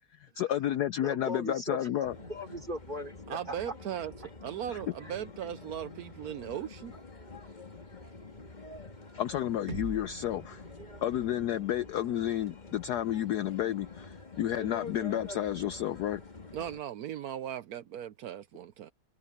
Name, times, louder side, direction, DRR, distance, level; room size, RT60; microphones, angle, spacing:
voice 1, 0.2-2.1 4.7-4.8 9.2-10.6 11.0-16.2, left 11 dB, 80° left, 0.9 m, -31 dB
voice 2, 1.0-3.6 5.0-5.2, equal, 20° right, 5.3 m, -39 dB
sound 1, 2.0-16.8, left 3 dB, 20° left, 1.8 m, -47 dB
voice 3, 3.3-4.1 4.4-6.9 16.5-18.9, right 10 dB, 75° right, 0.8 m, -38 dB
sound 2, 9.7-13.6, right 5 dB, 55° right, 0.5 m, -47 dB
omnidirectional pair, 2.4 m